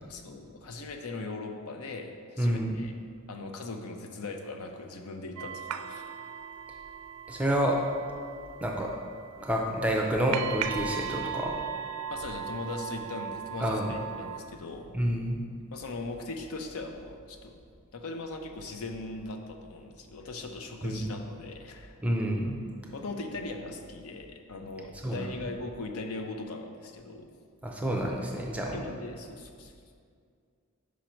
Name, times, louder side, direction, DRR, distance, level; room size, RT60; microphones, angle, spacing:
voice 1, 0.0-2.9 3.3-6.0 12.1-14.9 15.7-17.6 17.9-21.9 22.9-27.3 28.7-29.7, left 3 dB, 80° left, 4 dB, 0.6 m, -39 dB
voice 2, 2.4-2.8 7.3-7.8 8.6-8.9 9.4-11.5 13.6-13.9 14.9-15.4 20.8-21.0 22.0-22.6 25.0-25.3 27.6-28.8, right 1 dB, 5° right, -1 dB, 0.5 m, -28 dB
sound 1, 5.4-14.4, right 8 dB, 85° right, 0.3 m, -38 dB
5.2 x 5.1 x 4.4 m, 2.2 s
head